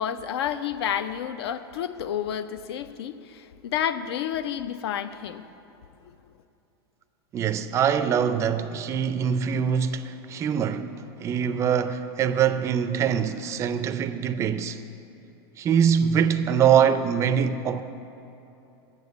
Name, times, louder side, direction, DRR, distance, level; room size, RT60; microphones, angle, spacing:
voice 1, 0.0-5.4 6.0-6.2, left 9 dB, 85° left, 0.5 m, -30 dB
voice 2, 7.3-10.9 11.2-14.8 15.6-17.8, right 8 dB, 20° right, 0.4 m, -23 dB
7.8 x 6.9 x 8.0 m
supercardioid pair, 135°, 13 cm